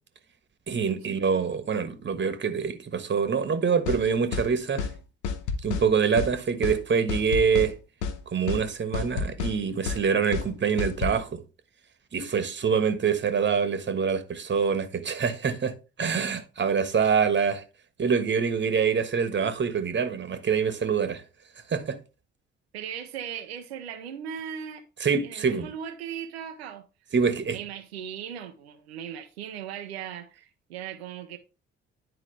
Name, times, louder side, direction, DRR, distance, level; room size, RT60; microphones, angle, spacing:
voice 1, 0.7-4.9 5.6-7.7 8.3-11.4 12.1-17.6 18.0-21.2 21.7-22.0 25.0-25.7 27.1-27.6, right 6 dB, 35° right, 1.4 m, -25 dB
sound 1, 3.9-4.0 4.3-4.5 4.8-4.9 5.2-5.9 6.2-6.3 6.6-6.8 7.1-7.7 8.0-8.2 8.5-8.6 8.9-9.6 9.9-10.0 10.3-10.5 10.8-11.2, left 5 dB, 70° left, 1.0 m, -30 dB
voice 2, 22.7-24.8 25.2-26.8 27.5-31.4, right 8 dB, 85° right, 0.7 m, -38 dB
10.0 x 4.7 x 3.3 m
figure-of-eight pair, 45°, 31 cm